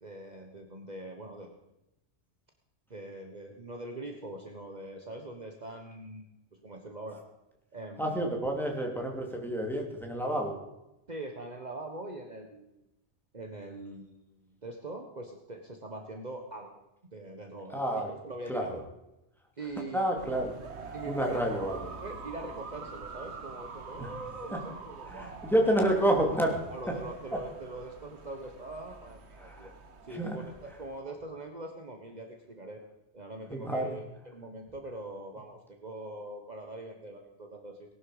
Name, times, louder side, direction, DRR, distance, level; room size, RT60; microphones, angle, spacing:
voice 1, 0.0-1.5 2.9-6.2 6.6-7.2 7.7-8.3 11.1-12.8 13.3-16.7 17.1-18.8 19.6-20.1 20.9-25.4 26.7-29.7 30.1-32.8 33.1-37.9, right 2 dB, 40° right, 3 dB, 1.5 m, -42 dB
voice 2, 8.0-10.5 17.7-18.1 18.5-18.7 19.9-20.5 21.0-21.9 24.0-24.1 24.5-24.6 25.1-26.6 29.4-29.7 30.1-30.4 33.5-33.9, right 1 dB, ahead, 0 dB, 2.8 m, -29 dB
sound 1, 20.2-31.0, right 4 dB, 70° right, 1.5 m, -45 dB
19.0 x 11.5 x 5.0 m, 0.91 s
omnidirectional pair, 1.2 m